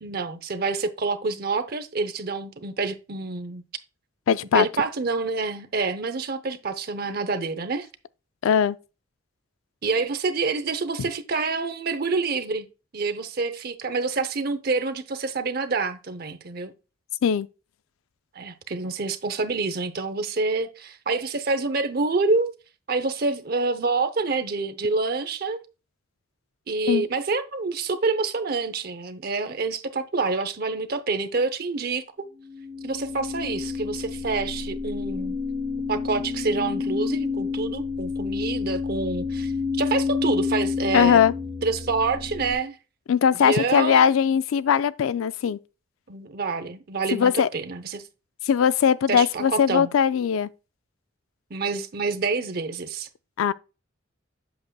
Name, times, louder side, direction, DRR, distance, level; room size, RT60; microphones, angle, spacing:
voice 1, 0.0-3.6 4.5-7.9 9.8-12.7 12.9-16.7 18.3-22.5 22.9-25.6 26.7-32.3 32.8-35.4 35.9-39.5 39.8-41.2 41.6-42.8 43.4-44.1 46.1-48.0 49.1-49.9 51.5-53.1, right 3 dB, 50° right, 0.7 m, -27 dB
voice 2, 4.3-4.7 8.4-8.8 17.2-17.5 26.9-27.1 40.9-41.3 43.1-45.6 47.1-47.5 48.5-50.5 53.4-53.5, left 7 dB, 85° left, 0.4 m, -20 dB
sound 1, 32.4-42.5, left 5 dB, 10° right, 2.6 m, -29 dB
7.9 x 6.6 x 2.3 m
head